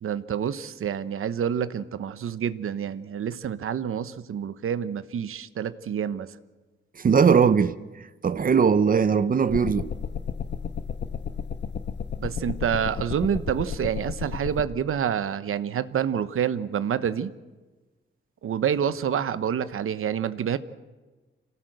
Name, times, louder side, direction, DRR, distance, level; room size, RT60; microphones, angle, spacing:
voice 1, 0.0-6.4 12.2-17.3 18.4-20.6, right 8 dB, 85° right, 1.0 m, -28 dB
voice 2, 7.0-7.8 8.2-9.9, right 6 dB, 40° right, 0.7 m, -19 dB
sound 1, 9.5-14.7, left 7 dB, 55° left, 1.1 m, -33 dB
27.0 x 18.0 x 7.9 m
wide cardioid pair, 175°, 21 cm